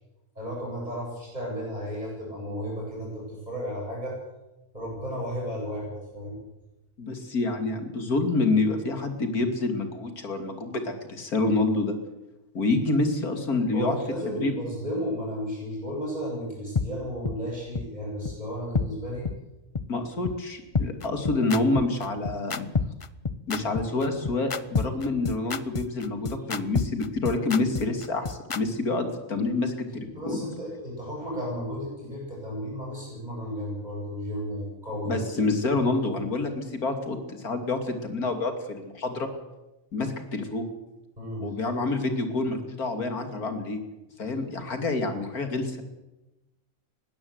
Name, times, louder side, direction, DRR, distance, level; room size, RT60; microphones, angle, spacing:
voice 1, 0.3-4.1 4.7-6.4 13.7-19.2 26.4-26.5 30.2-35.3 41.2-41.5, equal, 30° right, -5 dB, 8.0 m, -33 dB
voice 2, 7.0-12.0 12.5-14.0 14.4-14.5 19.9-22.7 23.5-30.4 35.1-39.3 39.9-40.6 41.4-43.8 44.2-45.8, left 3 dB, 90° left, 6 dB, 3.0 m, -27 dB
sound 1, 16.8-16.9 17.2-17.4 17.7-17.8 18.3-18.4 18.7-18.9 19.2-19.4 19.7-19.8 20.3-20.4 20.7-28.6, left 5 dB, 40° left, 0.4 m, -28 dB
21.0 x 16.5 x 8.0 m, 0.99 s
omnidirectional pair, 1.5 m